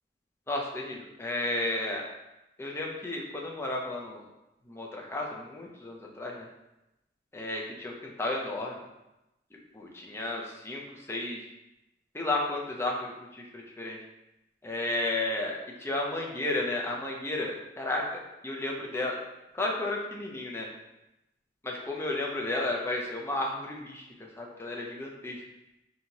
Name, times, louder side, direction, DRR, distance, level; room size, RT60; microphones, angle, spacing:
voice 1, 0.5-2.0 2.6-4.2 4.7-6.5 7.3-8.8 9.7-11.4 12.1-14.0 14.6-18.0 18.4-19.2 19.5-20.7 21.6-24.1 24.4-25.4, left 2 dB, 15° left, -1 dB, 0.4 m, -33 dB
4.3 x 2.7 x 2.8 m, 0.96 s
head